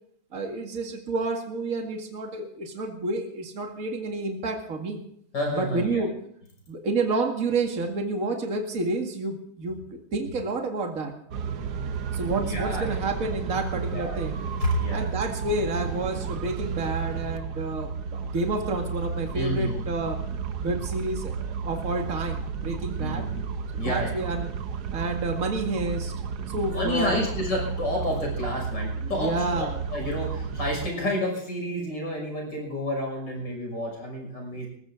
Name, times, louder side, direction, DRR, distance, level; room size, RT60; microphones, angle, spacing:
voice 1, 0.3-5.0 5.5-6.1 6.7-11.1 12.1-14.4 14.9-23.3 23.7-24.5 24.9-26.1 26.5-27.3 29.0-29.8 34.5-34.6, right 2 dB, 40° right, 3 dB, 2.4 m, -30 dB
voice 2, 5.3-6.0 12.3-13.0 13.9-14.2 14.6-15.2 19.3-19.7 23.0-23.4 23.8-24.1 26.5-34.7, left 1 dB, 60° left, 0 dB, 6.9 m, -30 dB
sound 1, 11.3-30.9, right 6 dB, 60° right, 1.4 m, -32 dB
20.5 x 15.0 x 3.8 m, 0.68 s
omnidirectional pair, 2.2 m